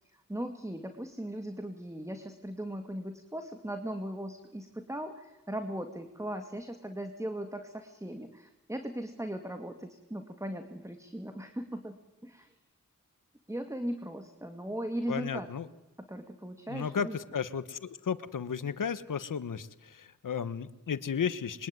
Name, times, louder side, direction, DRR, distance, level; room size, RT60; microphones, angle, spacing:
voice 1, 0.3-12.0 12.2-12.5 13.5-15.5 16.1-17.2, right 1 dB, 10° right, 7 dB, 2.1 m, -38 dB
voice 2, 15.1-15.7 16.7-21.7, left 7 dB, 85° left, 14 dB, 1.3 m, -34 dB
26.5 x 23.0 x 9.5 m, 1.1 s
wide cardioid pair, 80°, 31 cm